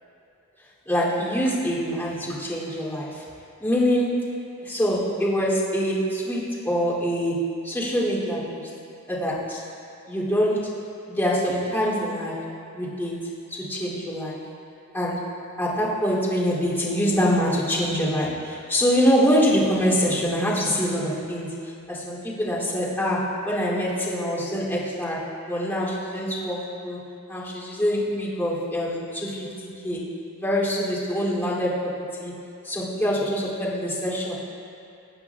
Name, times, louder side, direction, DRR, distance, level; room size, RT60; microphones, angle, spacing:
voice 1, 0.9-3.2 3.6-4.2 4.6-8.7 9.1-9.6 10.1-10.7 11.1-12.5 12.7-13.2 13.5-14.4 14.9-15.3 15.6-21.5 21.9-27.0 27.3-29.5 29.8-30.1 30.4-31.9 32.2-32.3 32.6-34.3, equal, 10° left, -9 dB, 2.9 m, -25 dB
22.5 x 8.4 x 2.4 m, 2.7 s
head